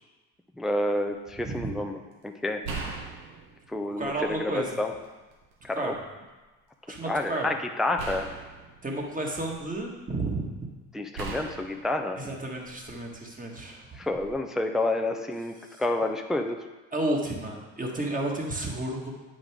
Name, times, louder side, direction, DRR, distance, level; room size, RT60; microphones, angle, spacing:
voice 1, 0.6-1.9 2.2-2.6 3.7-4.9 5.6-5.9 7.1-8.3 10.9-12.2 14.0-16.6, left 1 dB, ahead, 4 dB, 0.5 m, -29 dB
sound 1, 0.8-1.1 2.6-4.5 5.0-5.9 8.0-9.9 11.2-13.0 14.1-14.3, right 4 dB, 60° right, 1.4 m, -40 dB
voice 2, 4.0-4.8 5.7-6.0 6.9-7.5 8.8-10.6 12.2-14.0 15.6-15.8 16.9-19.1, right 2 dB, 20° right, 0 dB, 1.6 m, -32 dB
8.1 x 5.2 x 3.6 m, 1.2 s
hypercardioid pair, 65°, 43 cm